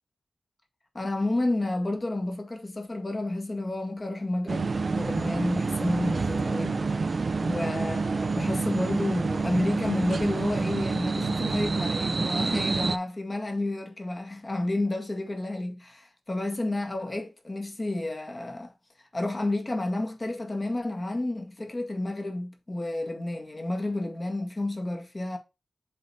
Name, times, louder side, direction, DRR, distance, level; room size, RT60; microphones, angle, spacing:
voice 1, 0.9-6.9 7.4-18.7 19.1-25.4, left 2 dB, 30° left, 1.7 m, -30 dB
sound 1, 4.5-13.0, right 4 dB, 50° right, 0.4 m, -28 dB
7.6 x 4.0 x 4.3 m
wide cardioid pair, 95°, 0 cm